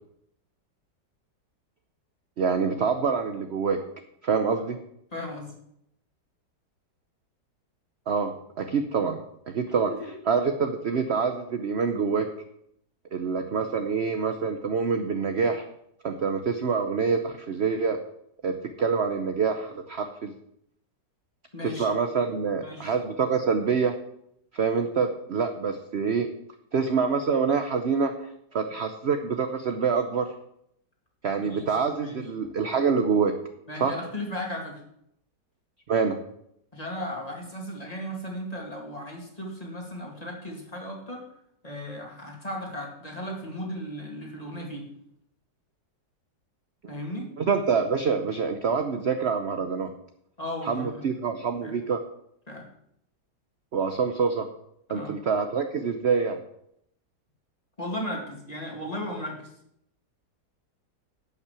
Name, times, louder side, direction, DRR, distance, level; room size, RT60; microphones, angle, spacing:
voice 1, 2.4-3.8 4.2-4.8 8.1-9.2 9.5-9.9 10.3-12.3 13.1-15.6 16.0-18.0 18.4-20.3 21.6-23.9 24.5-26.3 26.7-30.3 31.2-33.3 33.8-33.9 35.9-36.2 46.8-47.0 47.4-49.9 50.6-52.0 53.7-54.5 54.9-56.4, right 5 dB, 50° right, 7 dB, 0.8 m, -26 dB
voice 2, 5.1-5.5 9.8-10.2 21.5-21.9 22.6-22.9 31.4-32.3 33.7-34.8 36.7-41.3 41.6-44.8 46.9-47.3 50.4-51.1 51.6-51.8 52.5-52.7 54.9-55.2 57.8-59.5, left 1 dB, 20° left, -1 dB, 2.5 m, -36 dB
11.5 x 5.9 x 8.2 m, 0.76 s
omnidirectional pair, 1.9 m